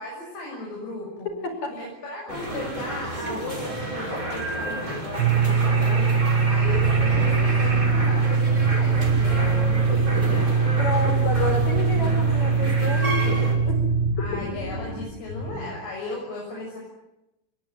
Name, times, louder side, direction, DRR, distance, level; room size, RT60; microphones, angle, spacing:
voice 1, 0.0-1.3 1.8-10.8 11.3-11.5 14.2-16.8, left 2 dB, 80° left, -1 dB, 9.1 m, -36 dB
sound 1, 2.3-13.5, right 1 dB, 20° right, 6.3 m, -31 dB
sound 2, 5.2-14.1, right 5 dB, 50° right, 1.1 m, -21 dB
sound 3, 6.6-15.8, equal, 25° left, 8.4 m, -34 dB
voice 2, 10.8-13.9, left 2 dB, 45° left, 7 dB, 5.9 m, -30 dB
28.0 x 22.5 x 9.5 m, 0.92 s
omnidirectional pair, 4.6 m